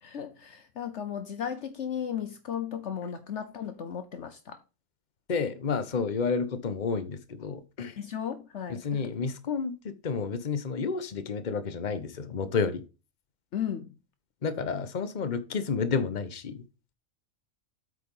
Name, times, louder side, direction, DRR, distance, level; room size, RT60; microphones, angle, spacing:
voice 1, 0.0-4.6 8.0-9.1 13.5-14.0, left 8 dB, 65° left, 1.0 m, -35 dB
voice 2, 5.3-8.0 8.8-12.8 14.4-16.6, left 5 dB, 35° left, 1.0 m, -30 dB
8.6 x 4.8 x 5.5 m
omnidirectional pair, 1.4 m